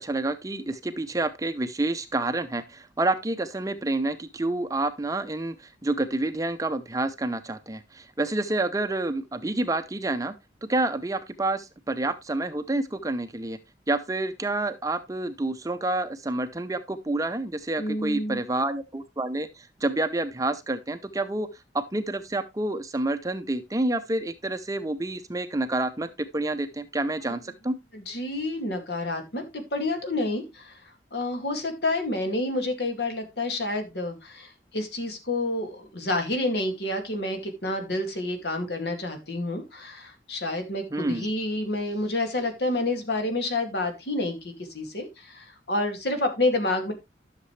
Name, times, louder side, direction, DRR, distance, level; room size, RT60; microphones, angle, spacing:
voice 1, 0.0-10.3 10.6-13.6 13.9-21.5 21.9-27.8 40.9-41.3, right 2 dB, 20° right, 0.6 m, -28 dB
voice 2, 17.8-18.4 27.9-30.8 31.1-46.9, left 2 dB, 65° left, 2.2 m, -29 dB
11.5 x 6.7 x 3.2 m
head